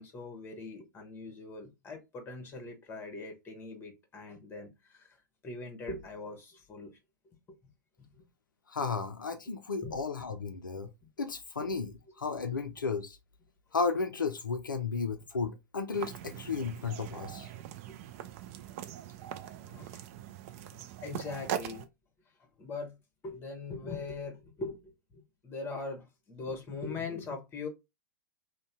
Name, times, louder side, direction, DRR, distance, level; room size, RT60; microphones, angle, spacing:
voice 1, 0.0-5.2 5.4-6.9 7.5-7.6 9.8-10.0 11.6-11.7 17.9-18.0 19.6-20.0 21.0-21.9 22.6-23.0 23.2-27.7, left 3 dB, 20° left, 1.0 m, -41 dB
voice 2, 8.7-10.9 11.2-13.2 13.7-17.5, left 4 dB, 80° left, 0.4 m, -34 dB
sound 1, 15.9-21.8, right 11 dB, 45° right, 0.3 m, -41 dB
2.6 x 2.1 x 3.4 m
figure-of-eight pair, 100°, 11 cm